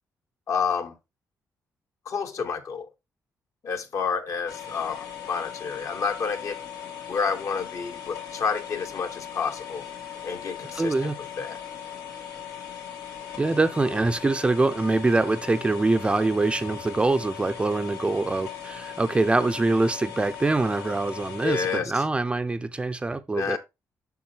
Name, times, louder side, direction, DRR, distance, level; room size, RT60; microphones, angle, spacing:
voice 1, 0.5-0.9 2.1-2.9 3.6-6.6 7.1-9.8 10.2-11.1 11.4-11.6 21.4-21.9 23.4-23.6, left 6 dB, 55° left, 1.1 m, -29 dB
sound 1, 4.5-21.8, left 9 dB, 85° left, 2.6 m, -39 dB
voice 2, 10.7-11.2 13.4-23.6, right 3 dB, 15° right, 0.5 m, -24 dB
7.2 x 5.9 x 2.9 m
cardioid pair, 135°, 6 cm